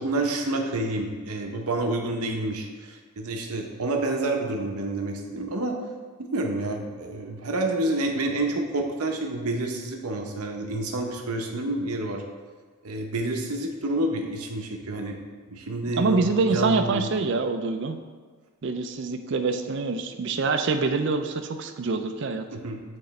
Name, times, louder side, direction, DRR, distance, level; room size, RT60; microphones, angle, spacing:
voice 1, 0.0-5.8 6.2-12.2 12.8-15.2 15.5-16.2 16.5-17.1 22.5-22.8, right 2 dB, 85° right, 2 dB, 0.8 m, -28 dB
voice 2, 16.0-18.0 18.6-22.4, right 3 dB, 50° right, 7 dB, 0.4 m, -25 dB
8.0 x 3.8 x 3.2 m, 1.5 s
head